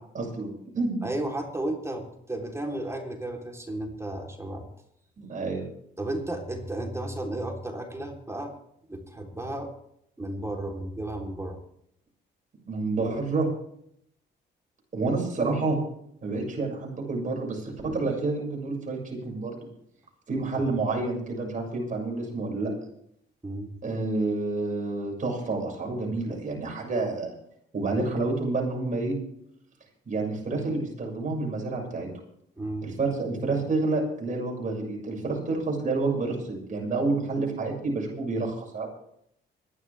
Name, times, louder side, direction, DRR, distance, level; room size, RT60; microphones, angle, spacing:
voice 1, 0.1-1.0 5.2-5.7 12.7-13.5 14.9-15.8 16.2-19.7 20.3-22.7 23.8-27.3 27.7-29.1 30.1-32.1 32.8-38.9, right 3 dB, 40° right, -1 dB, 6.6 m, -29 dB
voice 2, 1.0-4.6 6.0-8.5 8.9-9.7 10.2-11.6 20.6-20.7 23.4-23.7 32.6-32.9, right 1 dB, 15° right, 1 dB, 3.7 m, -33 dB
24.5 x 11.0 x 3.5 m, 0.70 s
cardioid pair, 90°, 20 cm